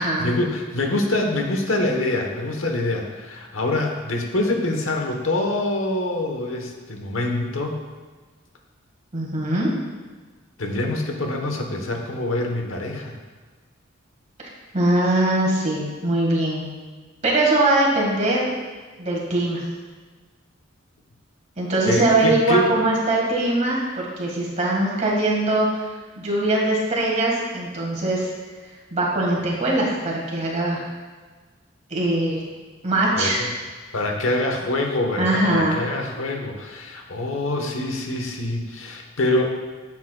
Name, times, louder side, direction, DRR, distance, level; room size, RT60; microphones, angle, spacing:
voice 1, 0.0-7.8 10.6-13.2 21.9-22.7 33.1-33.5 33.9-39.4, left 1 dB, 75° left, 2 dB, 1.0 m, -25 dB
voice 2, 9.1-9.7 14.7-16.7 17.2-18.5 19.0-19.6 21.6-25.9 26.2-28.3 28.9-30.8 31.9-32.4 32.8-33.5 35.2-35.8, right 1 dB, 35° right, -2 dB, 1.6 m, -21 dB
9.6 x 7.3 x 2.2 m, 1.4 s
head